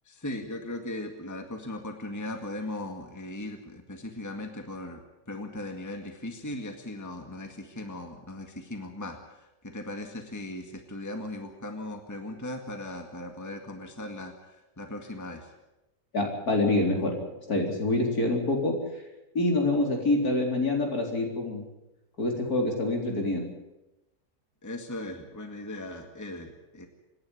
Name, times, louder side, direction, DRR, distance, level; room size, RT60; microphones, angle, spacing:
voice 1, 0.1-5.0 5.3-15.5 24.6-26.9, left 1 dB, 10° left, 4 dB, 1.9 m, -38 dB
voice 2, 16.1-17.2 17.5-18.7 19.3-21.7 22.2-23.5, left 2 dB, 60° left, 1 dB, 4.6 m, -26 dB
26.5 x 11.0 x 9.8 m, 0.97 s
omnidirectional pair, 1.8 m